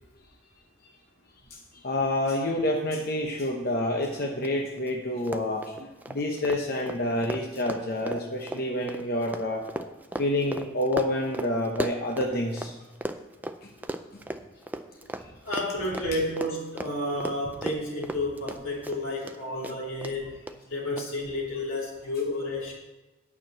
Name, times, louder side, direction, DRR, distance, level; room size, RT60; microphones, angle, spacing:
voice 1, 1.8-9.6 10.2-12.7, left 1 dB, 50° left, 1 dB, 0.9 m, -28 dB
Run, 4.4-4.5 4.8-4.9 5.2-12.7 13.0-19.4 19.6-20.1 20.5-20.6 21.0-21.1, right 1 dB, 10° right, 0.4 m, -36 dB
voice 2, 15.4-20.3 20.7-22.7, left 1 dB, 85° left, -3 dB, 3.1 m, -31 dB
9.3 x 6.0 x 7.6 m, 1.1 s
head